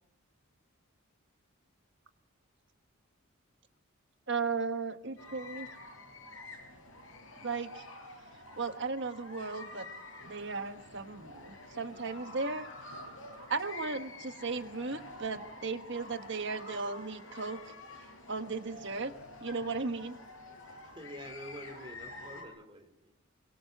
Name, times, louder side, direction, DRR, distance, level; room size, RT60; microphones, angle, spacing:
voice 1, 4.3-5.7 7.4-7.8 8.6-9.9 10.2-12.7 13.5-17.6 18.3-19.1 19.4-20.2, right 4 dB, 55° right, 8 dB, 1.3 m, -36 dB
sound 1, 5.2-22.4, left 2 dB, 60° left, 6.5 m, -48 dB
voice 2, 20.9-23.1, equal, 25° right, 6 dB, 3.4 m, -47 dB
24.0 x 22.5 x 7.9 m, 0.79 s
head